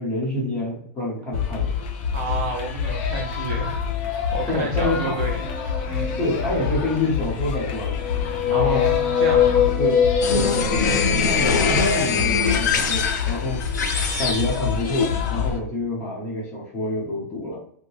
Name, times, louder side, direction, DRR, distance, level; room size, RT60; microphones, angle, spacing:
voice 1, 0.0-1.7 4.5-5.2 6.2-8.0 8.4-8.8 9.8-13.6 14.2-17.6, left 1 dB, 15° left, -5 dB, 0.9 m, -27 dB
sound 1, 1.3-15.6, left 7 dB, 30° left, 0.4 m, -27 dB
voice 2, 2.1-3.8 4.1-5.4 5.9-6.1 8.5-9.7, right 3 dB, 30° right, -1 dB, 0.5 m, -30 dB
sound 2, 5.3-6.9 7.7-11.6, left 8 dB, 65° left, 1.1 m, -23 dB
sound 3, 10.2-15.5, left 5 dB, 85° left, 0.6 m, -23 dB
2.7 x 2.2 x 3.1 m, 0.62 s
supercardioid pair, 180°, 10 cm